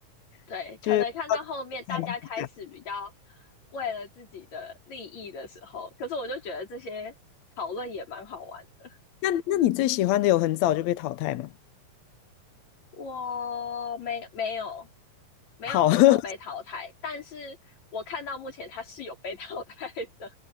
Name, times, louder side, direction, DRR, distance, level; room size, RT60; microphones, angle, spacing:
voice 1, 0.5-3.1 3.7-7.1 7.6-9.0 13.0-14.9 15.6-17.6 17.9-20.3, left 4 dB, 55° left, 5.5 m, -36 dB
voice 2, 9.2-11.5 15.7-16.2, left 14 dB, 70° left, 1.8 m, -22 dB
omnidirectional pair, 3.8 m